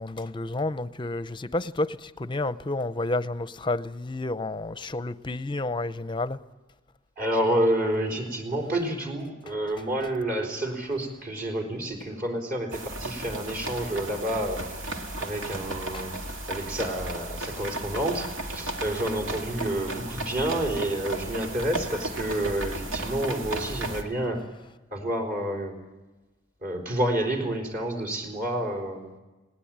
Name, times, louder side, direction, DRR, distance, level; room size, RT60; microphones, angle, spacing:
voice 1, 0.0-6.4 15.9-16.0, left 2 dB, 25° left, 0.6 m, -30 dB
voice 2, 7.2-14.7 15.2-24.4 24.9-25.8 26.6-29.1, right 1 dB, 45° right, 4.1 m, -29 dB
sound 1, 12.7-24.0, right 2 dB, 80° right, 2.3 m, -34 dB
20.0 x 18.5 x 8.7 m
head